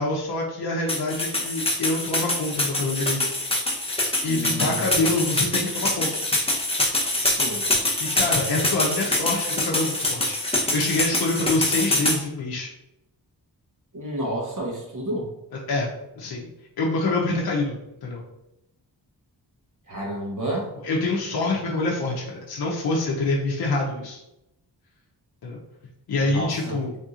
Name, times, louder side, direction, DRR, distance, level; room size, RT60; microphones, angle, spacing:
voice 1, 0.0-3.3 3.8-6.1 8.0-12.7 15.5-15.9 16.2-16.5 16.8-17.8 18.0-18.2 20.8-24.2 25.4-25.6 26.1-27.0, left 2 dB, 65° left, -4 dB, 0.7 m, -26 dB
sound 1, 0.9-12.2, left 1 dB, 15° left, 0.8 m, -24 dB
voice 2, 4.3-5.3 7.3-7.6 13.9-15.3 19.9-20.7 26.2-26.8, right 1 dB, 45° right, -2 dB, 1.2 m, -31 dB
3.5 x 2.7 x 2.4 m, 0.89 s
cardioid pair, 50°, 41 cm